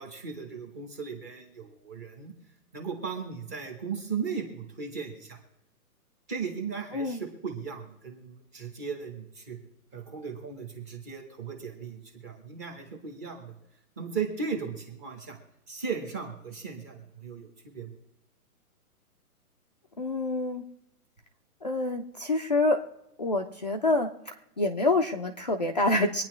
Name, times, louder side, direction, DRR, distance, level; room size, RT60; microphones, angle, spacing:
voice 1, 0.0-2.3 2.7-5.4 6.3-9.6 9.9-13.5 14.0-15.4 15.7-17.9, right 6 dB, 10° right, 2 dB, 0.9 m, -37 dB
voice 2, 20.0-20.6 21.6-22.8 23.2-24.1 24.6-26.2, left 2 dB, 30° left, 1 dB, 0.5 m, -26 dB
24.5 x 9.5 x 3.1 m, 0.89 s
hypercardioid pair, 175°, 45 cm